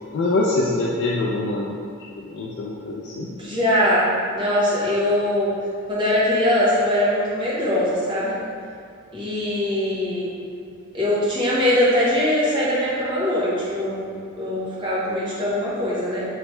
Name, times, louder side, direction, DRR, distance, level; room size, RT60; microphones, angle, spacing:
voice 1, 0.1-1.8 2.2-3.3, left 2 dB, 55° left, -4 dB, 0.3 m, -24 dB
voice 2, 3.3-5.5 5.9-8.4 9.1-10.3 10.9-16.2, left 1 dB, 25° right, -9 dB, 0.8 m, -22 dB
3.2 x 3.2 x 3.0 m, 2.3 s
head